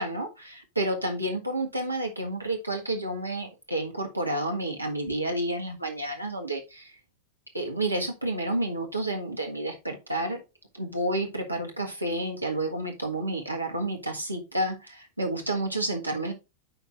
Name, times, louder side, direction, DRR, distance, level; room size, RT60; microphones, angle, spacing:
voice 1, 0.0-6.9 7.5-10.4 10.7-16.3, right 1 dB, 85° right, 2 dB, 1.5 m, -30 dB
13.5 x 4.6 x 2.5 m, 0.26 s
figure-of-eight pair, 90°, 0 cm